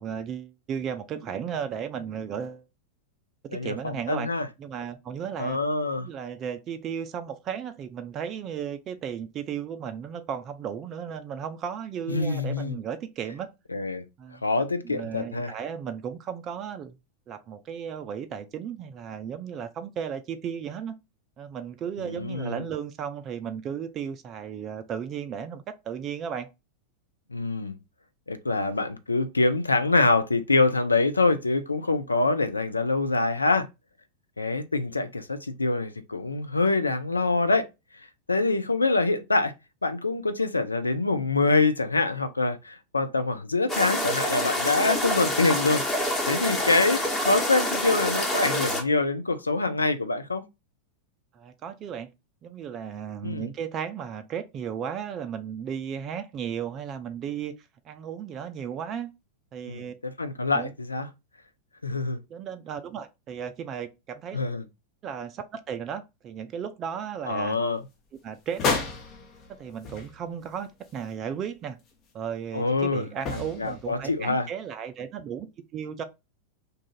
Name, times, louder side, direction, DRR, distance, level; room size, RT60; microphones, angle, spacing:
voice 1, 0.0-2.6 3.6-4.3 4.6-5.6 6.0-13.5 14.2-14.4 14.8-17.0 17.3-20.9 21.4-26.5 51.3-52.1 52.4-59.1 59.5-59.9 60.5-60.7 62.3-64.4 65.0-67.6 68.2-68.9 69.5-71.8 72.1-75.5 75.7-76.0, right 8 dB, 30° right, 0.3 m, -35 dB
voice 2, 3.5-4.5 5.4-6.1 12.1-12.8 13.7-14.0 14.4-15.5 22.0-22.6 27.3-27.7 28.3-33.7 34.4-37.7 38.3-39.5 39.8-50.5 53.2-53.5 59.6-61.1 61.8-62.2 64.3-64.6 67.3-67.8 72.5-74.5, left 3 dB, 80° left, 0.4 m, -25 dB
sound 1, 43.7-48.8, left 1 dB, 15° left, 1.1 m, -27 dB
sound 2, 68.5-70.7 70.9-71.0 73.2-74.2, left 4 dB, 30° left, 0.6 m, -31 dB
2.7 x 2.4 x 3.7 m
figure-of-eight pair, 90°, 0 cm